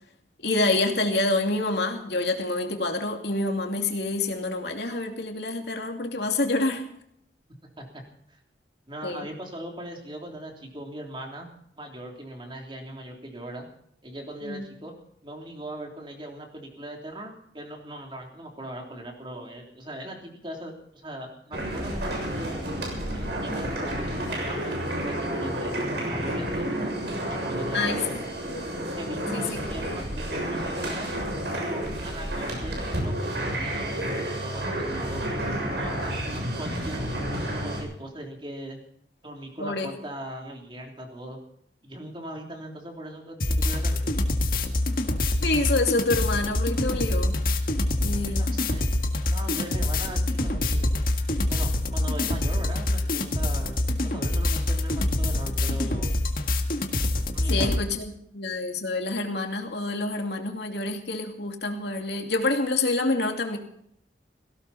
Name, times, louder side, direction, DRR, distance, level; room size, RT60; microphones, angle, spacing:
voice 1, 0.4-6.8 9.0-9.2 14.4-14.6 27.7-28.0 28.5-28.6 29.3-29.6 39.6-39.9 45.4-47.3 48.0-48.5 57.5-63.6, left 2 dB, 70° left, 3 dB, 2.6 m, -27 dB
voice 2, 7.6-8.0 8.3-8.4 8.9-11.5 11.8-13.6 14.0-14.9 15.2-22.6 23.1-26.9 27.3-28.1 28.9-31.1 31.5-35.2 35.6-38.8 39.2-41.4 41.8-44.0 48.0-50.9 51.5-56.2 57.3-57.7, right 1 dB, 30° right, 1 dB, 3.3 m, -40 dB
sound 1, 21.5-37.8, right 1 dB, 75° right, 6.9 m, -30 dB
sound 2, 43.4-57.8, left 1 dB, 50° left, 1.8 m, -25 dB
18.0 x 17.0 x 4.3 m, 0.69 s
head